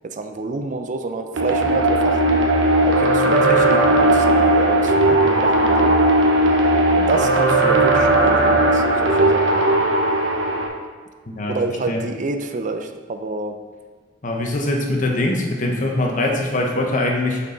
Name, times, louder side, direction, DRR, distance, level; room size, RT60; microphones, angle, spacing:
voice 1, 0.1-2.4 2.8-5.9 6.9-9.6 11.5-13.6, right 3 dB, 40° right, 7 dB, 0.5 m, -28 dB
sound 1, 1.4-10.7, right 1 dB, 85° right, 1.0 m, -17 dB
voice 2, 11.3-11.6 11.9-12.0 14.2-17.4, left 2 dB, 40° left, 1 dB, 1.0 m, -22 dB
6.2 x 6.1 x 3.9 m, 1.5 s
head